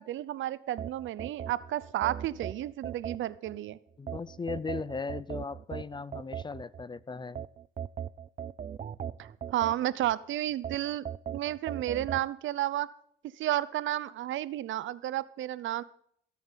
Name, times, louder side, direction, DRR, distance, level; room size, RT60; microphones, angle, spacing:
voice 1, 0.0-3.8 9.2-11.1 11.3-12.9 13.4-15.8, right 13 dB, 75° right, 18 dB, 0.7 m, -32 dB
sound 1, 0.8-3.6 4.1-6.8 7.4-10.1 10.6-12.3, right 8 dB, 35° right, 0.5 m, -39 dB
voice 2, 4.0-7.4, left 4 dB, 25° left, 20 dB, 0.5 m, -37 dB
17.0 x 8.6 x 5.7 m, 0.67 s
cardioid pair, 90°, 20 cm